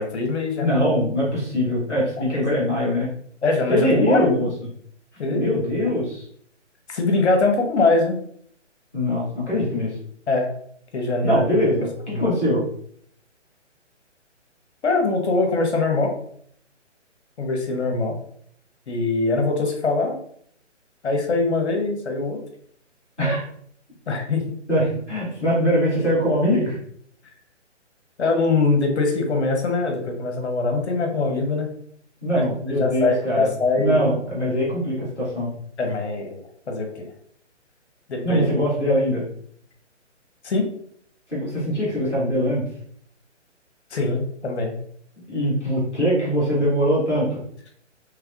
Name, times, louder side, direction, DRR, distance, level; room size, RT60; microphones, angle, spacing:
voice 1, 0.0-0.7 2.3-2.4 3.4-4.3 5.2-5.6 6.9-8.2 10.3-10.5 10.9-11.4 12.1-12.3 14.8-16.1 17.4-18.1 18.9-20.2 21.0-22.4 24.1-24.6 28.2-31.7 32.3-32.4 32.8-34.0 35.8-36.4 36.7-37.1 38.1-38.4 40.4-40.7 43.9-44.7, left 3 dB, 60° left, 4 dB, 1.0 m, -22 dB
voice 2, 0.6-3.1 3.7-4.5 5.3-6.2 8.9-10.0 11.2-12.6 23.2-23.4 24.7-26.8 32.2-33.5 33.8-35.5 38.2-39.2 41.3-42.6 45.3-47.4, equal, ahead, -31 dB, 0.4 m, -22 dB
3.4 x 3.1 x 2.4 m, 0.63 s
figure-of-eight pair, 145°, 37 cm